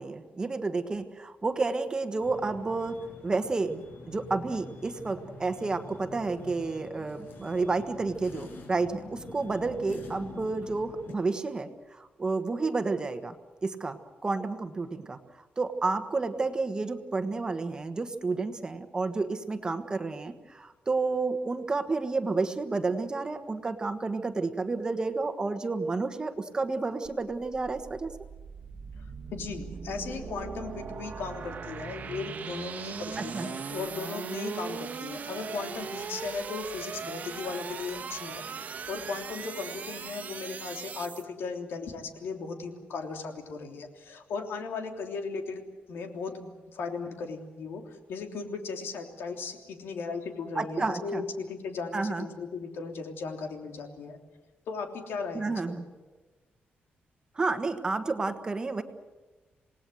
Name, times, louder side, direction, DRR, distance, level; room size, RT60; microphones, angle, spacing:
voice 1, 0.0-3.0 3.2-13.3 13.6-15.2 15.6-28.1 33.2-33.5 50.5-51.2 51.9-52.3 55.3-55.8 57.3-58.8, right 3 dB, 20° right, 8 dB, 1.4 m, -30 dB
sound 1, 2.2-11.1, left 3 dB, 65° left, 6.1 m, -46 dB
sound 2, 27.1-41.2, right 6 dB, 45° right, 1.4 m, -39 dB
voice 2, 29.3-54.2 54.7-55.8, left 4 dB, 85° left, 4 dB, 3.2 m, -37 dB
28.0 x 19.0 x 7.8 m, 1.2 s
wide cardioid pair, 175°, 4 cm